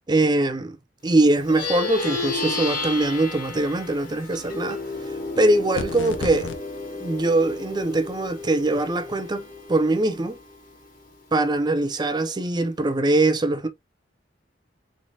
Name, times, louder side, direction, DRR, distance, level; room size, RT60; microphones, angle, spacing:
voice 1, 0.1-0.8 1.0-4.8 5.4-6.5 7.0-9.4 9.7-10.4 11.3-13.7, right 2 dB, 25° right, 0.5 m, -22 dB
Plucked string instrument, 1.4-11.1, left 3 dB, 45° left, 1.4 m, -32 dB
sound 1, 5.7-6.6, left 4 dB, 85° left, 0.6 m, -32 dB
3.9 x 3.2 x 2.7 m
head